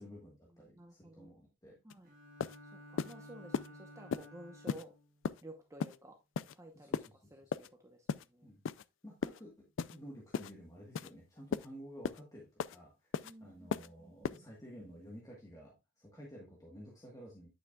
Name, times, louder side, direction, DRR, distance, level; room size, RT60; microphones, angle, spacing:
voice 1, 0.0-1.8 6.7-7.6 8.4-8.6 9.0-17.5, equal, 15° left, 1.3 m, -52 dB
voice 2, 0.6-1.3 1.8-2.1 2.7-4.9 5.4-6.2 6.5-6.9 7.3-8.5 13.2-13.7 14.0-14.4, right 1 dB, 15° right, 0.8 m, -53 dB
sound 1, 1.9-2.0 2.4-2.6 3.0-3.1 3.5-3.7 4.1-4.3 4.7-4.8 5.2-5.4 5.8-6.0 6.4-6.6 6.9-7.1 7.5-7.7 8.1-8.3 8.7-8.8 9.2-9.4 9.8-10.0 10.3-10.5 11.0-11.1 11.5-11.7 12.0-12.2 12.6-12.8 13.1-13.3 13.7-13.9 14.2-14.4, left 6 dB, 70° left, 0.4 m, -36 dB
Bowed string instrument, 2.0-5.1, equal, 40° right, 1.6 m, -54 dB
9.3 x 5.7 x 2.3 m
head